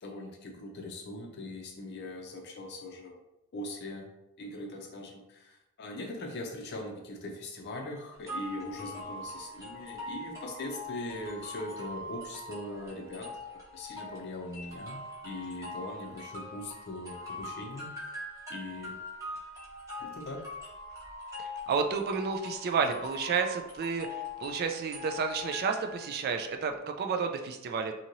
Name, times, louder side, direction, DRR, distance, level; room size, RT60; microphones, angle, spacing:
voice 1, 0.0-3.1 3.5-4.1 4.4-13.3 13.7-17.9 18.5-19.0 20.0-20.5, left 1 dB, 50° left, 2 dB, 0.5 m, -41 dB
sound 1, 8.3-26.2, left 2 dB, 15° right, 0.9 m, -42 dB
voice 2, 21.4-27.9, right 5 dB, 45° right, 5 dB, 0.3 m, -31 dB
2.9 x 2.7 x 2.6 m, 0.90 s
head